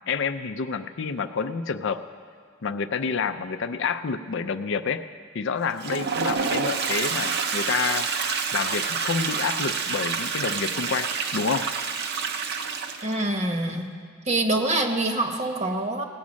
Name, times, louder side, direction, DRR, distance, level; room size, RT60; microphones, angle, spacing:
voice 1, 0.1-2.0 2.6-5.0 5.3-8.1 8.5-11.7, left 5 dB, 60° left, 10 dB, 0.5 m, -28 dB
Toilet flush, 5.6-13.3, right 5 dB, 50° right, 0.7 m, -28 dB
voice 2, 13.0-13.9 14.2-16.0, right 2 dB, 35° right, 5 dB, 1.0 m, -25 dB
18.0 x 8.4 x 6.3 m, 2.1 s
head